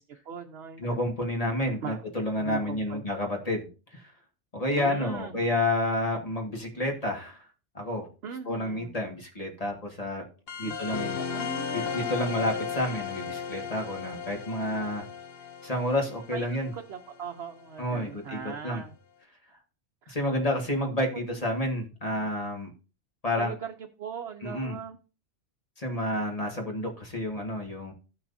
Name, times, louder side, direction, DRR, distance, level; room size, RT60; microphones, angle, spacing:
voice 1, 0.0-1.0 1.8-2.0 2.4-3.0 4.8-5.5 8.2-9.0 10.6-12.2 16.3-16.5 16.7-18.9 20.0-20.1 21.3-21.9 23.4-25.0, right 6 dB, 65° right, 3 dB, 1.0 m, -40 dB
voice 2, 0.8-4.1 4.5-7.5 7.7-8.1 8.5-10.3 10.6-11.2 11.7-15.1 15.6-16.7 17.8-18.8 20.1-22.7 23.2-23.6 24.4-24.8 25.8-27.9, left 1 dB, 30° left, 1 dB, 2.0 m, -30 dB
sound 1, 10.5-17.6, left 6 dB, 55° left, 0.9 m, -35 dB
16.5 x 5.9 x 2.7 m, 0.33 s
omnidirectional pair, 1.2 m